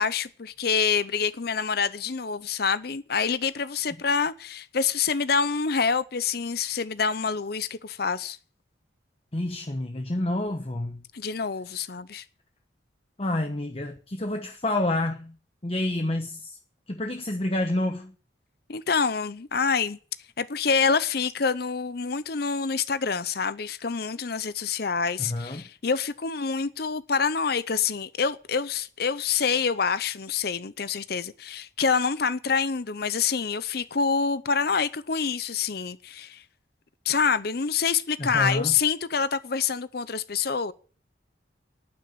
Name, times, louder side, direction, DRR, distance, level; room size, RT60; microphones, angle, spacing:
voice 1, 0.0-8.4 11.1-12.2 18.7-20.0 20.4-36.4 37.0-40.7, left 5 dB, 55° left, 0.7 m, -26 dB
voice 2, 9.3-11.0 13.2-15.4 15.6-16.6 16.9-18.1 25.2-25.6 38.2-38.7, left 1 dB, 30° left, 1.0 m, -28 dB
11.5 x 9.4 x 9.4 m
head